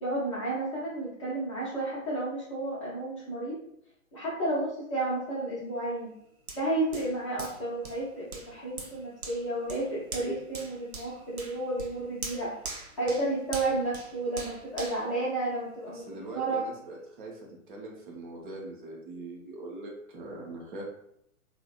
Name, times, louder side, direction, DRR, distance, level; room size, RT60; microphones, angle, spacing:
voice 1, 0.0-3.6 4.1-6.1 6.5-12.5 13.0-16.6, right 2 dB, 25° left, -7 dB, 0.4 m, -32 dB
Hands, 6.5-16.0 16.5-16.6, right 3 dB, 85° right, 0.6 m, -43 dB
voice 2, 15.9-17.4 17.7-20.9, right 2 dB, 40° right, -2 dB, 0.7 m, -42 dB
2.7 x 2.0 x 2.3 m, 0.73 s
figure-of-eight pair, 120°, 42 cm